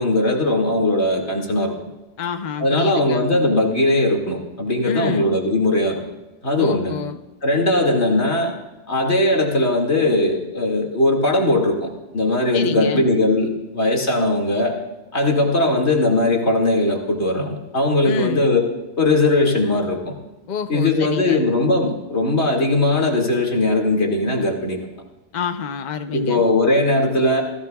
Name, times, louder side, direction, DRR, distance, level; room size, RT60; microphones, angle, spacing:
voice 1, 0.0-1.7 2.6-6.0 6.4-6.9 7.4-8.5 8.9-14.8 15.1-18.7 19.0-20.1 20.7-24.8 26.1-27.4, left 2 dB, 40° left, 1 dB, 2.4 m, -19 dB
voice 2, 2.2-3.2 4.8-5.3 6.6-7.2 12.5-13.1 18.0-18.5 20.5-21.4 25.3-26.5, left 6 dB, 80° left, 7 dB, 0.4 m, -28 dB
27.5 x 16.5 x 2.3 m, 1.1 s
omnidirectional pair, 1.8 m